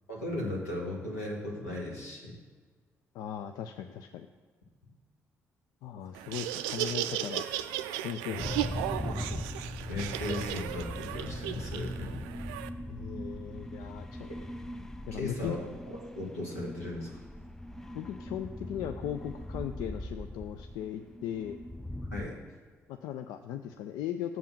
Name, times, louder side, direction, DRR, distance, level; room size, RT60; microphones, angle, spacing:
voice 1, 0.1-2.4 8.2-8.5 9.9-12.2 15.1-17.2 22.1-22.3, left 2 dB, 85° left, -3 dB, 1.5 m, -37 dB
voice 2, 3.1-4.3 5.8-7.4 8.0-8.5 12.9-14.3 15.1-15.6 17.9-21.6 22.9-24.4, left 10 dB, 60° left, 7 dB, 0.4 m, -38 dB
Laughter, 6.1-12.7, right 12 dB, 70° right, 0.3 m, -35 dB
sound 1, 8.4-22.3, left 1 dB, 5° left, 0.5 m, -40 dB
7.5 x 5.5 x 7.2 m, 1.5 s
figure-of-eight pair, 40°, 8 cm